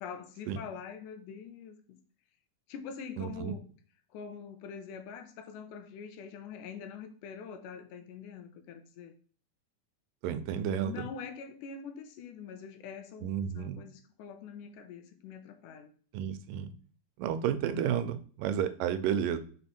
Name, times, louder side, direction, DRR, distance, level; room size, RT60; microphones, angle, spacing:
voice 1, 0.0-2.0 2.7-3.6 4.1-9.1 10.8-15.9, left 6 dB, 80° left, 6 dB, 2.2 m, -44 dB
voice 2, 3.2-3.5 10.2-11.0 13.2-13.8 16.1-16.7 17.2-19.4, right 9 dB, 85° right, 10 dB, 2.3 m, -31 dB
5.2 x 4.3 x 4.2 m, 0.43 s
omnidirectional pair, 3.8 m